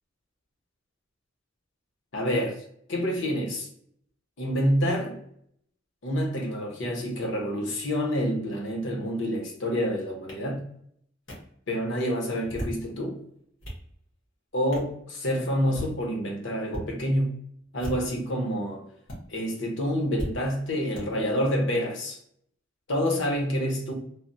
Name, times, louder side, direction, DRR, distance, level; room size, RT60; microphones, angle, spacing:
voice 1, 2.1-2.6 2.9-3.7 4.4-5.2 6.0-10.6 11.7-13.2 14.5-17.4 17.7-18.9 19.3-22.2 22.9-23.9, equal, 65° left, 0.8 m, -28 dB
sound 1, 10.3-10.4 11.3-11.4 12.3-12.8 13.4-13.8 14.7-14.9 15.6-15.9 16.7-16.9 17.7-18.2 19.1-19.2 20.2-20.3 20.9-21.1, equal, 90° left, 1.2 m, -36 dB
3.2 x 2.1 x 2.6 m
head